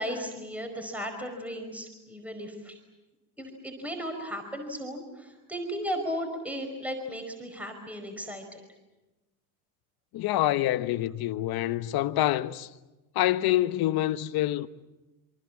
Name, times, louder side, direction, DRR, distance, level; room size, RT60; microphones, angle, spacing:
voice 1, 0.0-2.8 3.4-8.6, equal, 5° right, 5.0 m, -35 dB
voice 2, 10.1-12.7 13.1-14.7, left 14 dB, 55° left, 1.2 m, -26 dB
27.5 x 25.0 x 7.5 m
cardioid pair, 130°, 43 cm